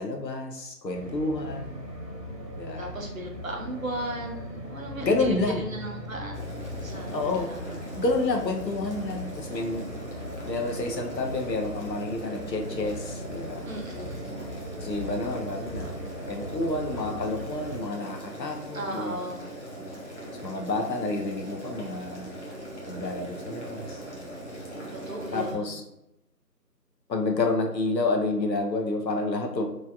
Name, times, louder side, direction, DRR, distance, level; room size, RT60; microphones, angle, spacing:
voice 1, 0.0-1.8 2.6-2.9 5.0-5.7 7.1-9.8 10.5-13.7 14.8-16.0 16.3-19.2 20.4-22.3 22.9-24.0 25.3-25.8 27.1-29.6, left 2 dB, 85° left, 2 dB, 0.8 m, -29 dB
sound 1, 0.9-17.8, equal, 80° right, 1.0 m, -39 dB
voice 2, 2.8-7.7 13.7-14.2 15.8-15.9 18.7-19.5 24.9-25.7, right 1 dB, 55° right, 0 dB, 0.6 m, -36 dB
Boiling, 6.3-25.5, right 1 dB, 45° left, 0.7 m, -41 dB
3.2 x 2.3 x 2.6 m, 0.88 s
figure-of-eight pair, 175°, 49 cm